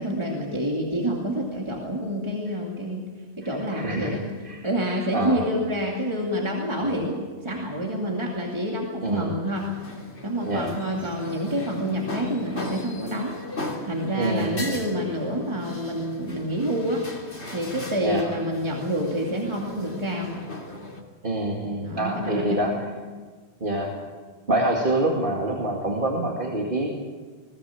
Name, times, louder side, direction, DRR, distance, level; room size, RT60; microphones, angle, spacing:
voice 1, 0.0-3.1 3.4-9.7 10.2-13.4 13.8-17.1 17.5-20.4 21.8-22.8, equal, 25° right, -2 dB, 2.5 m, -28 dB
voice 2, 3.7-4.1 4.4-4.6 5.1-5.4 6.8-7.0 9.0-9.3 10.5-10.7 14.2-14.7 18.0-18.3 21.2-22.7 23.6-23.9 24.5-26.9, right 1 dB, 50° right, -1 dB, 2.4 m, -26 dB
sound 1, 9.5-21.0, left 2 dB, 80° left, 3.4 m, -38 dB
21.5 x 17.0 x 8.4 m, 1.5 s
omnidirectional pair, 1.1 m